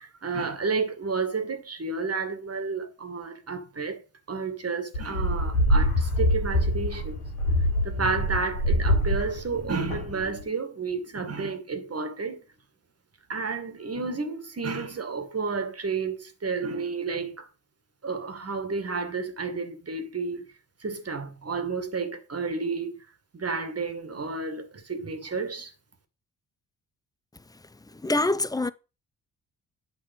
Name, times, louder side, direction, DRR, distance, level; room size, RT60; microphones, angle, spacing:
voice 1, 0.0-4.0 4.3-7.2 7.8-12.4 13.3-17.5 18.0-20.5 20.8-23.0 23.3-25.7, right 4 dB, 35° right, 1.9 m, -31 dB
sound 1, 4.9-10.4, equal, 90° left, 3.4 m, -25 dB
voice 2, 28.0-28.7, left 2 dB, 10° left, 0.6 m, -24 dB
9.2 x 5.1 x 5.4 m
hypercardioid pair, 40°, 42 cm